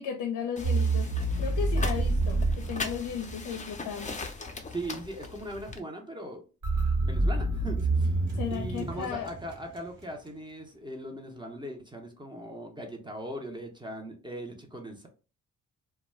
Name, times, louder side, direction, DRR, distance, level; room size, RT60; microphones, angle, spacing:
voice 1, 0.0-4.2 8.3-9.3, left 7 dB, 70° left, 4 dB, 0.5 m, -35 dB
sound 1, 0.6-5.8, left 3 dB, 25° left, 0.5 m, -40 dB
sound 2, 0.6-3.6 6.6-10.1, right 2 dB, 65° right, 1.1 m, -28 dB
voice 2, 4.7-6.4 7.0-15.1, right 1 dB, 15° right, 2 dB, 0.7 m, -39 dB
2.3 x 2.2 x 3.2 m, 0.35 s
supercardioid pair, 60°, 32 cm